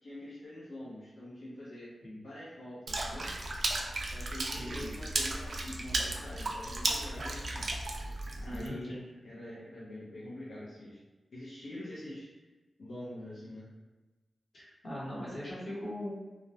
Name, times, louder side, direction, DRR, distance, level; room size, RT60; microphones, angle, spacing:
voice 1, 0.0-1.9 2.2-3.4 4.0-7.7 8.4-8.9 9.2-11.0 11.3-12.3 12.8-13.6, left 1 dB, 80° left, -10 dB, 0.6 m, -45 dB
Water / Splash splatter, 2.9-8.7, right 2 dB, 60° right, 0.3 m, -35 dB
voice 2, 4.5-4.9 8.4-9.0 14.5-16.1, equal, 60° left, -9 dB, 1.0 m, -40 dB
2.4 x 2.1 x 2.6 m, 1.2 s
wide cardioid pair, 90°, 0 cm